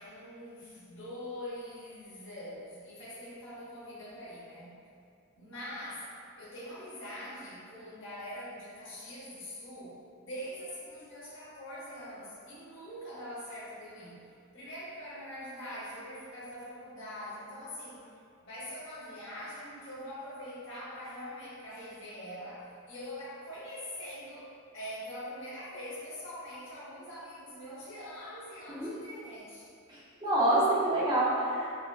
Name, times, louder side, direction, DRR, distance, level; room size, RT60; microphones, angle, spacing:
voice 1, 0.0-4.8 5.4-18.1 18.4-24.5 24.7-29.7, equal, 60° left, -8 dB, 0.9 m, -43 dB
voice 2, 29.9-31.8, right 1 dB, 20° right, -8 dB, 0.4 m, -27 dB
3.9 x 2.1 x 2.3 m, 2.4 s
head